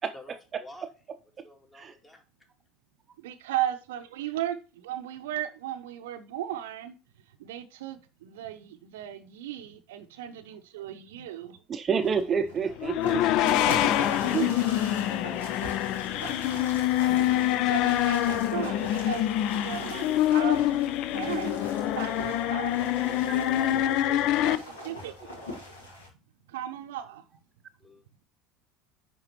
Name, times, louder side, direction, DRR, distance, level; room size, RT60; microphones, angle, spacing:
voice 1, 0.1-0.9 1.4-2.2 12.6-13.0 14.2-15.7 22.7-23.9 25.0-25.6 27.8-28.0, left 1 dB, 20° left, 1.9 m, -48 dB
voice 2, 3.2-6.9 7.4-11.6 17.7-19.3 19.5-20.6 21.1-22.9 23.3-25.3 26.5-27.2, right 11 dB, 70° right, 0.6 m, -36 dB
voice 3, 11.7-13.2 13.5-14.0 14.3-14.5, right 6 dB, 35° right, 0.6 m, -29 dB
sound 1, 12.0-26.1, left 1 dB, 80° left, 1.8 m, -40 dB
sound 2, 12.8-24.6, left 13 dB, 55° left, 0.4 m, -26 dB
9.7 x 3.6 x 3.0 m
figure-of-eight pair, 70°, 0 cm